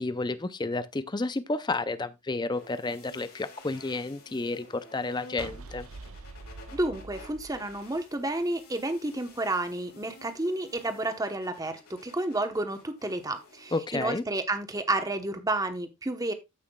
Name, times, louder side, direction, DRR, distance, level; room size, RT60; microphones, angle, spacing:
voice 1, 0.0-5.9 13.7-14.2, left 3 dB, 20° left, 0.5 m, -31 dB
sound 1, 2.5-13.8, left 2 dB, 90° left, 5.7 m, -52 dB
sound 2, 5.4-8.6, right 3 dB, 75° right, 0.9 m, -45 dB
voice 2, 6.7-16.3, right 2 dB, 15° right, 1.0 m, -31 dB
14.0 x 5.8 x 2.3 m
head